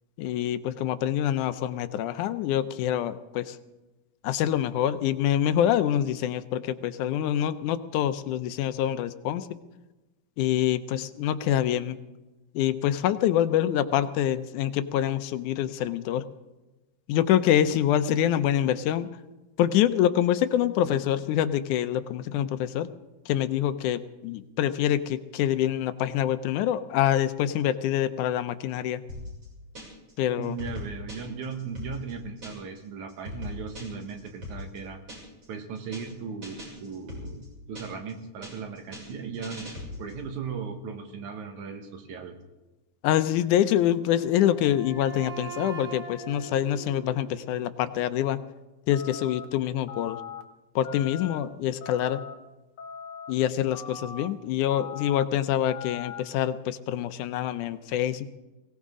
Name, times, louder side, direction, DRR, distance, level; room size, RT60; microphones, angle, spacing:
voice 1, 0.2-3.6 4.2-9.5 10.4-12.0 12.5-16.3 17.1-19.1 19.6-22.9 23.3-29.0 30.2-30.6 43.0-48.4 48.9-50.2 50.8-52.2 53.3-58.3, left 11 dB, 80° left, 11 dB, 2.2 m, -26 dB
sound 1, 29.1-30.1 30.4-32.8 33.1-35.4 35.7-36.1 36.4-38.1 38.4-40.2, left 1 dB, 35° right, 7.0 m, -40 dB
voice 2, 30.4-35.0 35.5-42.4, right 5 dB, 70° right, 5 dB, 2.8 m, -37 dB
Wind instrument woodwind instrument, 43.9-47.9, right 6 dB, 5° right, 3.0 m, -42 dB
sound 2, 48.9-49.5 49.9-50.4 50.8-51.4 51.8-52.3 52.8-53.3 53.7-54.3 54.7-55.2 55.7-56.2, left 7 dB, 65° left, 1.0 m, -40 dB
22.5 x 17.0 x 3.7 m, 1.1 s
omnidirectional pair, 3.5 m